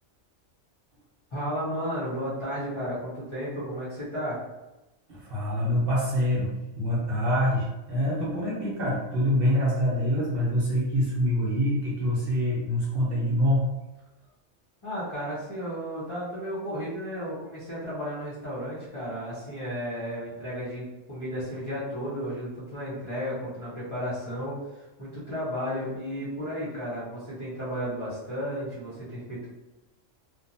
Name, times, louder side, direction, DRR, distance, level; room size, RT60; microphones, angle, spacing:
voice 1, 1.3-4.4 14.8-29.5, equal, 25° left, -10 dB, 0.8 m, -33 dB
voice 2, 5.1-6.5 6.8-13.7, equal, 55° right, -6 dB, 0.9 m, -25 dB
3.0 x 2.2 x 2.6 m, 1.0 s
omnidirectional pair, 1.3 m